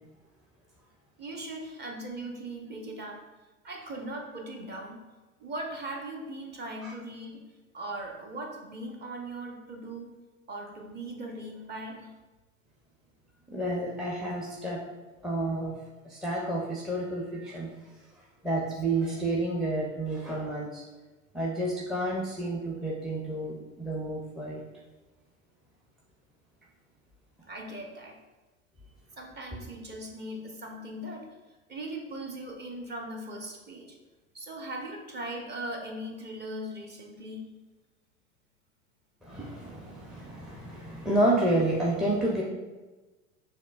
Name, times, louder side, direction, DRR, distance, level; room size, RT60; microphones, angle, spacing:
voice 1, 1.2-3.2 3.6-5.0 5.4-7.4 7.7-10.1 10.5-12.1 27.5-28.2 29.2-31.3 31.7-34.0 34.3-37.5, right 1 dB, 25° right, 1 dB, 0.8 m, -39 dB
voice 2, 13.5-14.8 15.2-15.8 16.1-17.7 18.4-20.8 21.3-24.6 39.3-42.4, right 1 dB, ahead, -3 dB, 0.5 m, -30 dB
6.3 x 2.8 x 2.4 m, 1.2 s
figure-of-eight pair, 80°, 41 cm